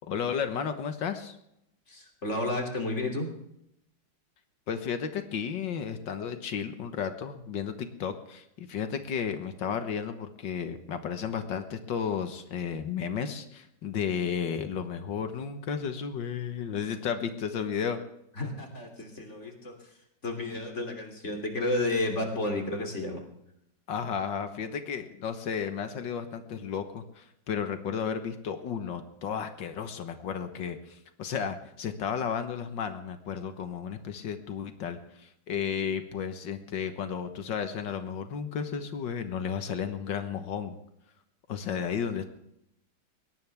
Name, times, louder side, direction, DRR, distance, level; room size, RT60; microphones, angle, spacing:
voice 1, 0.1-1.4 4.7-18.0 23.9-40.8 41.5-42.3, left 7 dB, 80° left, 8 dB, 1.9 m, -33 dB
voice 2, 1.9-3.3 18.4-19.7 20.2-23.2, left 2 dB, 40° left, 2 dB, 3.3 m, -31 dB
21.5 x 17.5 x 3.5 m, 0.80 s
omnidirectional pair, 2.0 m